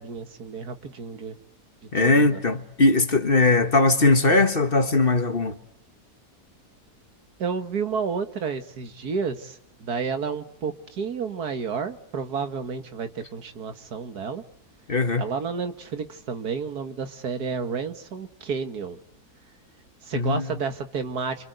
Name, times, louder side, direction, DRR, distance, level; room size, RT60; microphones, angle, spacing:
voice 1, 0.0-1.4 2.0-2.4 7.4-14.4 15.2-19.0 20.0-21.5, right 5 dB, 85° right, 2.2 m, -31 dB
voice 2, 1.9-5.6 14.9-15.2 20.1-20.4, left 3 dB, 35° left, 1.7 m, -20 dB
28.5 x 26.0 x 8.0 m
omnidirectional pair, 1.6 m